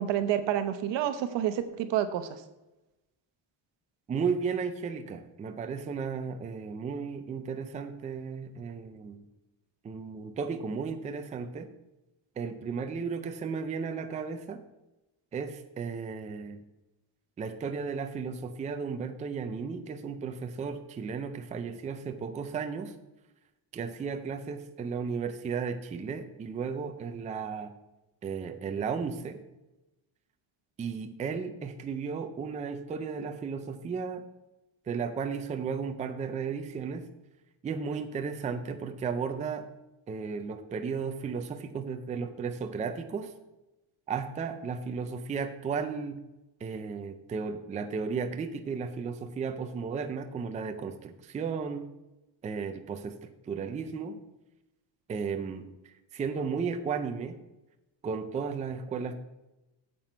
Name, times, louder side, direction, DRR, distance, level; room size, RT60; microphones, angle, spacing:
voice 1, 0.0-2.4, right 10 dB, 75° right, 10 dB, 1.0 m, -29 dB
voice 2, 4.1-9.2 9.8-11.7 12.4-14.6 15.3-16.6 17.4-22.9 23.7-27.7 28.2-29.4 30.8-34.2 34.9-37.0 37.6-39.6 40.1-43.3 44.1-46.2 46.6-51.9 52.4-54.2 55.1-55.7 56.1-57.4 58.0-59.1, right 5 dB, 20° right, 8 dB, 0.4 m, -34 dB
9.2 x 7.6 x 4.4 m, 0.98 s
cardioid pair, 180°, 43 cm